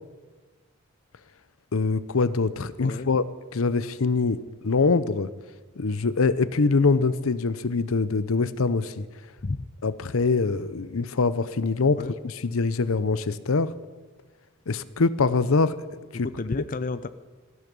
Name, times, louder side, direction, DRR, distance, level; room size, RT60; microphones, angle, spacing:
voice 1, 1.7-3.2 3.5-5.3 5.8-9.1 9.8-13.7 14.7-15.8 16.1-16.3 16.5-16.6, left 4 dB, 80° left, 15 dB, 0.7 m, -24 dB
voice 2, 16.1-17.1, left 3 dB, 40° left, 12 dB, 0.5 m, -31 dB
18.0 x 14.0 x 5.4 m, 1.3 s
head